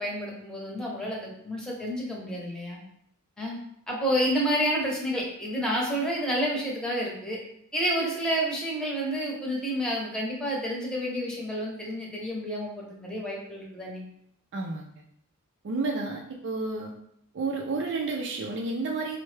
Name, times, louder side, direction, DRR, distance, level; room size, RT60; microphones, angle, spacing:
voice 1, 0.0-2.8 3.4-3.6 3.9-7.4 7.7-14.0, equal, 5° left, -4 dB, 0.8 m, -29 dB
voice 2, 14.5-14.9 15.6-16.9 17.3-19.2, right 3 dB, 55° right, 0 dB, 0.4 m, -31 dB
4.3 x 2.1 x 3.2 m, 0.72 s
head